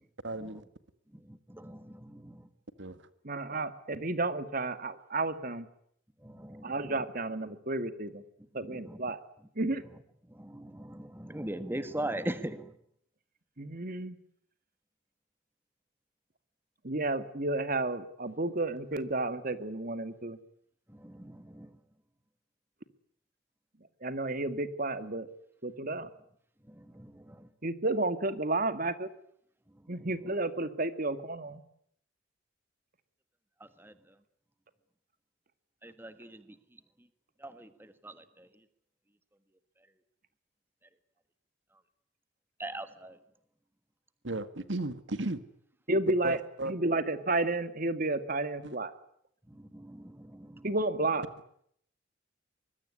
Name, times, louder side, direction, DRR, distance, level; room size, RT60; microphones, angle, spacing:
voice 1, 0.2-0.6 2.8-3.1 44.2-45.4 46.2-46.7 48.6-48.8, right 2 dB, 75° right, 12 dB, 1.8 m, -35 dB
voice 2, 1.3-2.4 6.2-6.9 8.6-9.0 10.3-12.7 20.9-21.7 26.7-27.5 33.8-33.9 35.8-36.4 37.4-38.5 42.6-43.2 49.5-50.7, right 1 dB, 10° right, 11 dB, 1.5 m, -41 dB
voice 3, 3.3-5.7 6.6-8.2 8.5-9.2 9.6-9.8 13.6-14.2 16.8-20.4 24.0-25.3 25.6-26.1 27.6-29.1 29.9-31.6 45.9-46.4 46.7-48.9 50.6-51.2, right 2 dB, 50° right, 11 dB, 2.1 m, -31 dB
24.5 x 22.0 x 9.8 m, 0.69 s
head